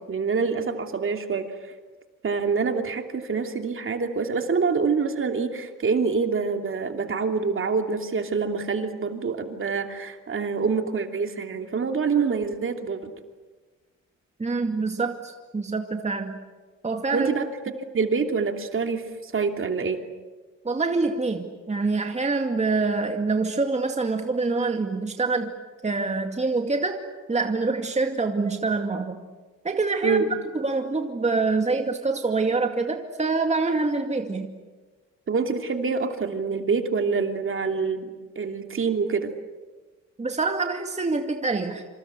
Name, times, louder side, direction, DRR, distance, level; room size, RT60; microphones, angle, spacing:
voice 1, 0.0-1.4 2.2-13.1 17.1-17.5 17.9-20.0 30.0-30.3 35.3-39.3, right 5 dB, 45° right, 5 dB, 3.0 m, -26 dB
voice 2, 14.4-16.4 16.8-17.3 20.6-25.5 25.8-27.0 27.3-29.2 29.6-30.2 30.5-34.5 40.2-41.8, right 3 dB, 20° right, 4 dB, 2.3 m, -25 dB
26.5 x 26.0 x 8.2 m, 1.3 s
cardioid pair, 90°, 30 cm